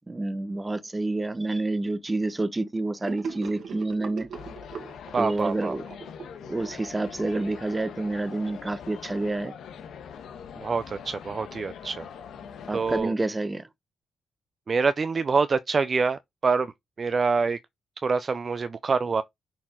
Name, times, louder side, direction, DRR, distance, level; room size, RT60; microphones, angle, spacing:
voice 1, 0.1-4.3 5.2-5.8 6.5-9.5 12.7-13.6, right 2 dB, 20° right, 0.9 m, -28 dB
Gurgling / Sink (filling or washing), 3.0-7.5, right 6 dB, 65° right, 1.7 m, -40 dB
sound 1, 4.3-13.0, left 7 dB, 90° left, 1.1 m, -43 dB
voice 2, 5.1-5.8 10.6-12.1 12.7-13.1 14.7-16.7 17.0-17.6 18.0-19.2, right 4 dB, 40° right, 0.4 m, -26 dB
6.0 x 4.2 x 3.7 m
cardioid pair, 110°, 0 cm